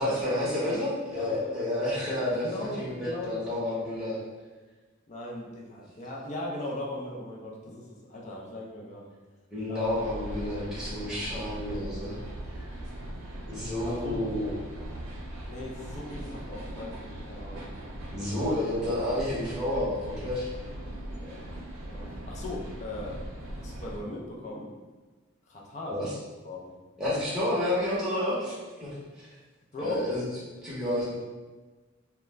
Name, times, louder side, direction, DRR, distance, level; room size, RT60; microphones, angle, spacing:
voice 1, 0.0-4.2 9.5-12.2 12.5-12.8 13.5-14.5 18.1-20.5 25.8-26.1 27.0-29.0 29.8-30.2 30.6-31.1, left 1 dB, 5° right, -10 dB, 0.7 m, -30 dB
voice 2, 1.1-1.7 2.4-3.4 5.1-9.1 9.7-9.9 12.8-12.9 13.8-14.3 15.5-17.6 21.2-21.5 21.9-23.2 23.6-24.7 25.5-26.1 26.4-26.7 29.7-30.1, left 1 dB, 35° left, -2 dB, 0.4 m, -38 dB
sound 1, 9.8-24.0, right 1 dB, 85° right, 0.5 m, -40 dB
2.3 x 2.2 x 3.1 m, 1.3 s
head